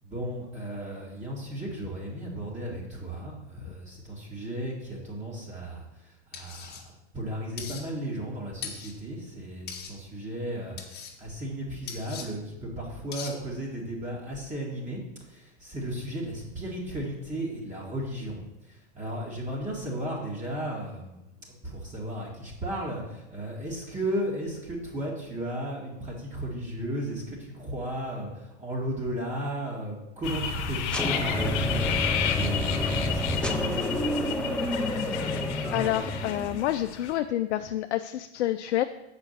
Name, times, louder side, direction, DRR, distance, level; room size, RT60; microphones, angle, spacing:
voice 1, 0.0-5.8 6.3-15.0 15.3-18.4 18.7-34.2, right 1 dB, 20° right, -5 dB, 2.2 m, -35 dB
sound 1, 6.3-6.8 7.6-7.8 8.6-8.9 9.7-9.9 10.8-11.1 11.9-12.3 13.1-13.3, left 7 dB, 30° left, 1.6 m, -39 dB
sound 2, 30.2-37.2, left 6 dB, 55° left, 1.2 m, -32 dB
sound 3, 30.9-36.9, left 1 dB, 5° left, 0.5 m, -29 dB
voice 2, 35.7-38.8, left 13 dB, 80° left, 8 dB, 0.5 m, -28 dB
6.4 x 5.1 x 6.7 m, 0.94 s
hypercardioid pair, 100°, 34 cm